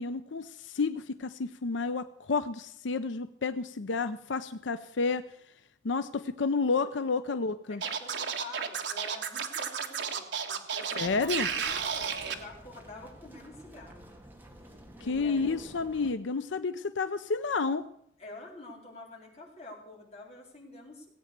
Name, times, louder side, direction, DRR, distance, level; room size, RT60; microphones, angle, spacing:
voice 1, 0.0-5.2 5.8-7.8 11.0-11.5 15.0-17.8, left 4 dB, 90° left, 11 dB, 0.6 m, -30 dB
voice 2, 7.7-14.1 14.6-15.7 18.2-21.1, left 2 dB, 35° left, -2 dB, 4.4 m, -48 dB
Scratching (performance technique), 7.8-12.3, right 7 dB, 75° right, 1.5 m, -32 dB
sound 1, 11.0-16.1, right 1 dB, 10° right, 1.8 m, -51 dB
17.0 x 8.8 x 6.7 m, 0.74 s
head